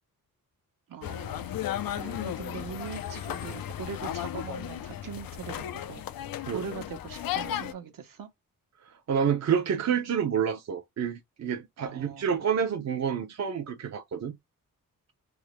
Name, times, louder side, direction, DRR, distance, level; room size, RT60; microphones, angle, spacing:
voice 1, 0.9-1.6 2.2-6.2 6.5-8.3 11.8-12.4, right 6 dB, 70° right, 1.0 m, -41 dB
sound 1, 1.0-7.7, left 11 dB, 85° left, 0.5 m, -35 dB
voice 2, 8.9-14.3, right 7 dB, 50° right, 0.7 m, -29 dB
3.6 x 2.1 x 3.0 m
wide cardioid pair, 145°, 34 cm